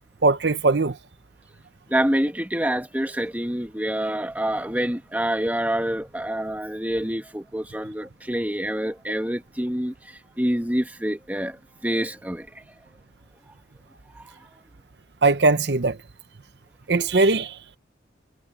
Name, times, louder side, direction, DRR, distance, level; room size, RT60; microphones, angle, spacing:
voice 1, 0.2-1.0 15.2-16.0 16.9-17.6, right 3 dB, 65° right, 0.8 m, -20 dB
voice 2, 1.9-12.6 14.2-14.3, right 1 dB, 10° right, 1.4 m, -27 dB
head